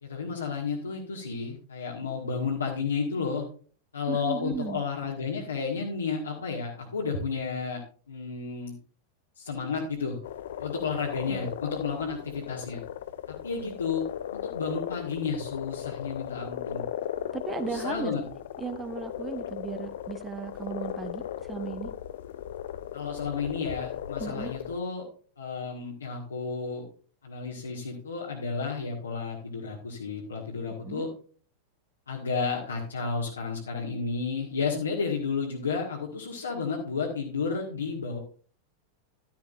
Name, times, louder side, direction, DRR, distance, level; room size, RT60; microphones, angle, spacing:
voice 1, 0.0-3.4 3.9-8.7 9.4-10.2 10.6-12.8 13.3-16.9 17.6-18.2 22.9-25.1 25.4-26.8 27.2-31.1 32.1-38.2, left 5 dB, 75° left, -2 dB, 1.8 m, -32 dB
voice 2, 4.1-4.9 11.3-11.6 17.3-18.1 18.6-21.9 24.2-24.5 30.8-31.1, right 6 dB, 15° right, 9 dB, 0.9 m, -36 dB
sound 1, 10.2-24.8, left 11 dB, 60° left, 0.5 m, -37 dB
11.5 x 10.5 x 2.5 m, 0.40 s
figure-of-eight pair, 90°, 0 cm